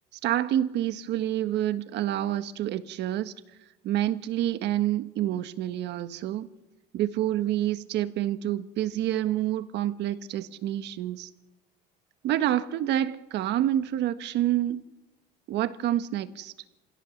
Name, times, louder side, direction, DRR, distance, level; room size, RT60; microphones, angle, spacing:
voice 1, 0.2-3.3 3.8-6.5 6.9-11.3 12.2-14.8 15.5-16.5, right 12 dB, 65° right, 11 dB, 1.5 m, -28 dB
26.5 x 17.0 x 7.2 m, 1.0 s
cardioid pair, 125°, 20 cm